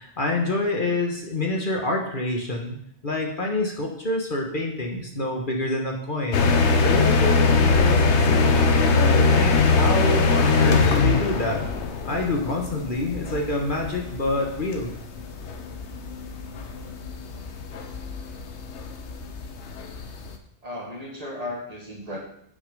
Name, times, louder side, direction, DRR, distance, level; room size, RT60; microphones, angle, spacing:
voice 1, 0.0-2.7 3.0-6.5 6.8-11.7 12.0-14.9, left 2 dB, 45° left, 1 dB, 1.4 m, -27 dB
sound 1, 6.3-20.3, left 4 dB, 75° left, 1.2 m, -22 dB
voice 2, 20.6-22.2, left 1 dB, 35° right, -1 dB, 1.8 m, -35 dB
8.1 x 6.4 x 5.3 m, 0.72 s
omnidirectional pair, 1.2 m